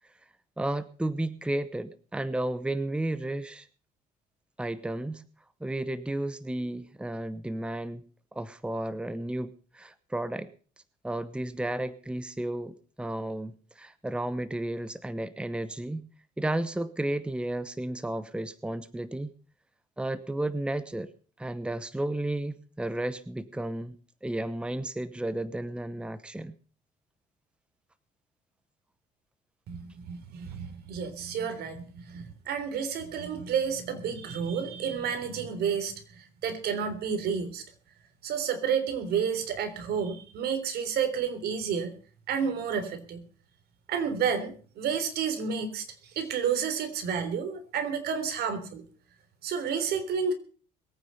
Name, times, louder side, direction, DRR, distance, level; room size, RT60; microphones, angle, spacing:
voice 1, 0.6-3.7 4.6-5.2 5.6-10.5 11.0-16.1 16.4-19.3 20.0-21.1 21.4-26.5, right 1 dB, 5° right, 15 dB, 0.9 m, -33 dB
voice 2, 29.7-37.6 38.2-41.9 42.3-43.2 43.9-45.9 46.2-48.8 49.4-50.3, right 7 dB, 70° right, 9 dB, 3.6 m, -30 dB
21.5 x 9.4 x 5.5 m, 0.40 s
cardioid pair, 110°, 17 cm